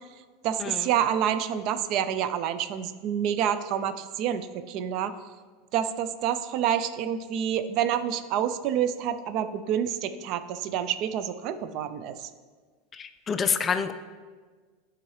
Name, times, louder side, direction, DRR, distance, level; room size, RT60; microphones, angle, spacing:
voice 1, 0.4-5.2 5.7-12.3, right 9 dB, 55° right, 11 dB, 0.4 m, -28 dB
voice 2, 12.9-13.9, left 6 dB, 25° left, 10 dB, 0.3 m, -27 dB
9.8 x 3.7 x 3.2 m, 1.5 s
hypercardioid pair, 110°, 0 cm